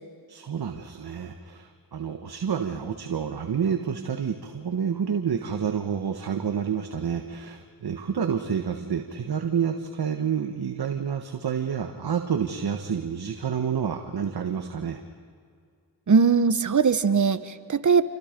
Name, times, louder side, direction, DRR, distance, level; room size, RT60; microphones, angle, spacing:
voice 1, 0.3-15.0, right 7 dB, 60° right, 5 dB, 1.5 m, -29 dB
voice 2, 16.1-18.0, right 5 dB, 45° right, 11 dB, 1.2 m, -20 dB
28.0 x 25.0 x 5.3 m, 2.2 s
cardioid pair, 55°, 42 cm